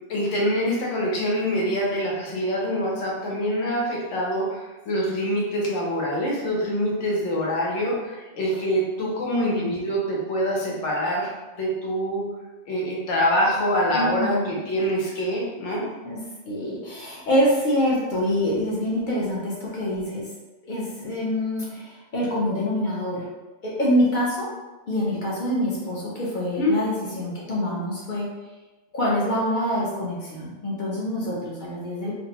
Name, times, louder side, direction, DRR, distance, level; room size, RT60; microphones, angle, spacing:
voice 1, 0.1-12.2 12.7-15.9 26.6-26.7, equal, 90° left, -3 dB, 1.0 m, -25 dB
voice 2, 13.9-14.5 16.0-16.2 16.4-20.2 20.6-23.2 23.6-24.5 24.9-28.3 28.9-32.1, equal, 55° left, -5 dB, 0.6 m, -25 dB
2.5 x 2.1 x 2.7 m, 1.1 s
omnidirectional pair, 1.2 m